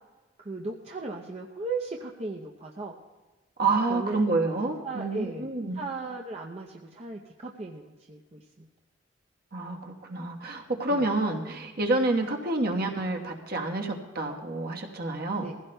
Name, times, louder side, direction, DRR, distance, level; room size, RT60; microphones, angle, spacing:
voice 1, 0.4-3.0 3.9-4.3 4.8-5.5 5.7-8.7 10.9-11.1 15.4-15.5, right 3 dB, 35° right, 0 dB, 0.6 m, -36 dB
voice 2, 3.6-5.8 9.5-15.5, right 2 dB, 55° right, 2 dB, 1.2 m, -28 dB
21.0 x 15.5 x 2.2 m, 1.2 s
head